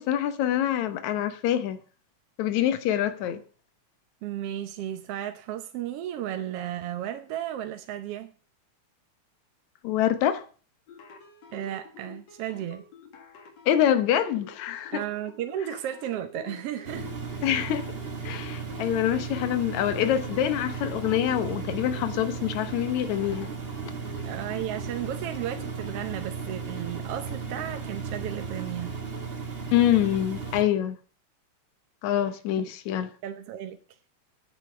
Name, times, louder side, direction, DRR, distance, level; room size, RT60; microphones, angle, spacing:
voice 1, 0.0-1.8 2.4-3.4 9.8-10.4 13.7-15.0 17.4-17.9 18.2-23.5 29.7-31.0 32.0-33.1, left 11 dB, 80° left, 2.4 m, -25 dB
voice 2, 4.2-8.3 11.5-12.8 14.9-17.1 24.2-28.9 33.2-33.8, right 11 dB, 70° right, 1.6 m, -34 dB
sound 1, 10.9-25.9, left 4 dB, 65° left, 3.1 m, -48 dB
Engine, 16.8-30.6, right 5 dB, 30° right, 1.2 m, -35 dB
9.7 x 8.3 x 6.9 m
omnidirectional pair, 3.3 m